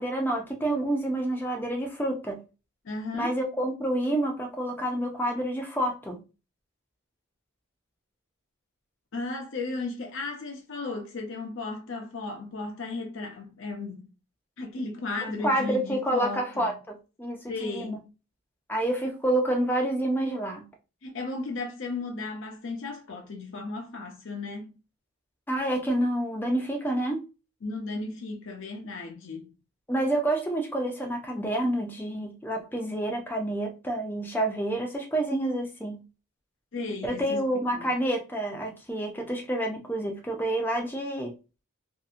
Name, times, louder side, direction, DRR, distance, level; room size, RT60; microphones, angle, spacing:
voice 1, 0.0-2.4 3.1-6.2 15.4-16.7 17.2-18.0 18.7-20.6 25.5-27.2 29.9-36.0 37.0-41.3, right 1 dB, 10° left, 0.5 m, -28 dB
voice 2, 2.8-3.4 9.1-14.1 14.6-16.8 17.5-18.0 21.0-24.7 27.6-29.5 36.7-37.9, left 3 dB, 60° left, 0.6 m, -35 dB
2.7 x 2.5 x 2.4 m
head